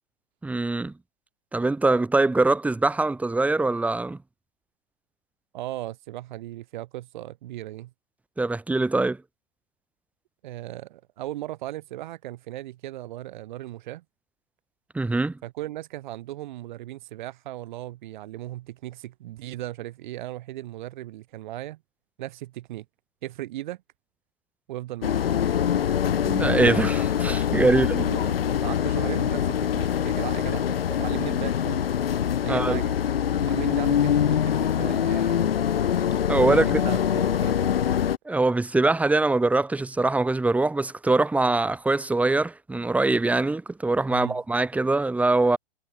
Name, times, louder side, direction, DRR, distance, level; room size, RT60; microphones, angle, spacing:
voice 1, 0.4-0.9 1.5-4.2 8.4-9.2 14.9-15.4 26.2-28.0 32.5-32.8 36.3-36.6 38.3-45.6, right 2 dB, 5° right, 1.6 m, -23 dB
voice 2, 5.5-7.9 10.4-14.0 15.4-21.8 22.2-22.8 23.2-23.8 24.7-25.3 27.7-31.8 32.4-33.0 33.4-35.5 36.5-37.7 44.1-44.4, right 15 dB, 55° right, 2.8 m, -37 dB
sound 1, 25.0-38.2, left 9 dB, 75° left, 1.0 m, -24 dB
hypercardioid pair, 125°, 29 cm